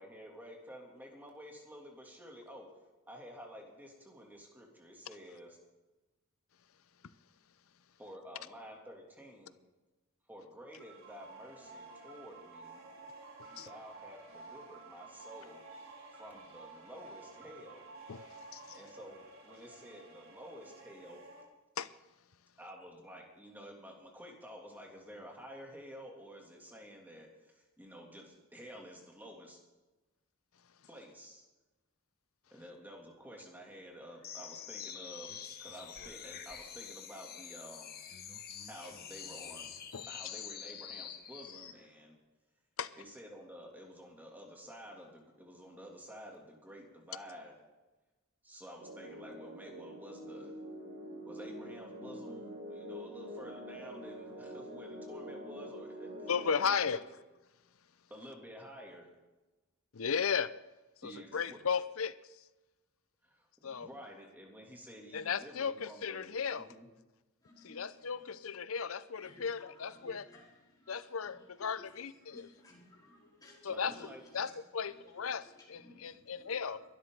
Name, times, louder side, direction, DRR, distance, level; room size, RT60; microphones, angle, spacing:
voice 1, 0.0-2.7 3.1-5.6 8.0-9.6 10.3-12.8 13.4-15.6 16.1-17.8 18.7-21.2 22.6-29.6 30.9-31.4 32.5-38.0 38.7-39.7 40.1-42.1 43.0-47.5 48.4-50.6 51.2-56.3 56.6-57.0 58.1-59.1 61.0-61.6 63.2-66.9 73.7-74.2, equal, 10° right, -1 dB, 3.0 m, -51 dB
sound 1, 10.7-21.4, right 3 dB, 75° right, 4.4 m, -52 dB
sound 2, 34.2-41.8, left 8 dB, 45° left, 1.5 m, -46 dB
sound 3, 48.8-56.6, equal, 60° right, 4.8 m, -46 dB
voice 2, 56.3-57.0 59.9-60.5 61.0-62.1 63.6-63.9 65.1-66.7 67.6-70.3 70.9-72.5 73.6-73.9 74.3-76.8, left 6 dB, 75° left, 16 dB, 0.7 m, -35 dB
voice 3, 67.4-68.1 69.1-71.9 72.2-74.5 74.8-75.0 75.3-76.9, left 2 dB, 20° left, -6 dB, 4.4 m, -58 dB
22.5 x 12.5 x 4.0 m, 1.1 s
head